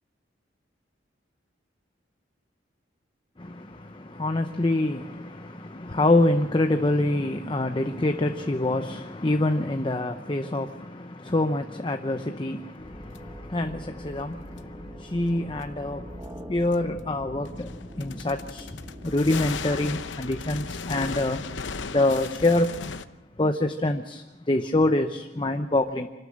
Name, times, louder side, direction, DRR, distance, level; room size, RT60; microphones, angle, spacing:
voice 1, 3.4-21.4 21.9-22.8 23.4-26.1, left 2 dB, 25° left, 0.7 m, -26 dB
sound 1, 12.8-19.6, equal, 20° right, 1.3 m, -43 dB
sound 2, 13.2-13.3 14.6-14.7 16.7-16.8 17.5-23.1, left 5 dB, 80° left, 0.9 m, -36 dB
26.5 x 12.5 x 8.7 m
head